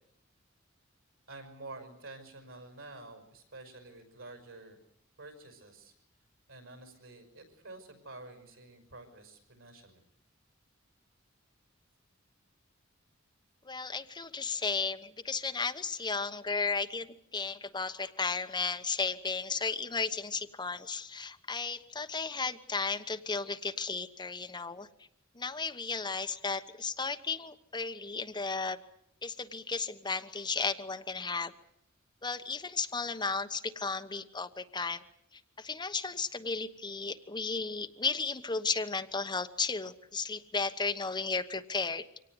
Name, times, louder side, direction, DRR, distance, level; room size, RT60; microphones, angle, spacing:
voice 1, 1.3-4.8 5.2-5.9 6.5-10.0, right 2 dB, 90° right, 7 dB, 5.9 m, -49 dB
voice 2, 13.6-17.1 17.3-24.9 25.3-28.8 29.2-31.5 32.2-35.0 35.6-42.1, left 4 dB, 20° left, 8 dB, 1.1 m, -34 dB
25.0 x 18.0 x 9.6 m, 0.74 s
head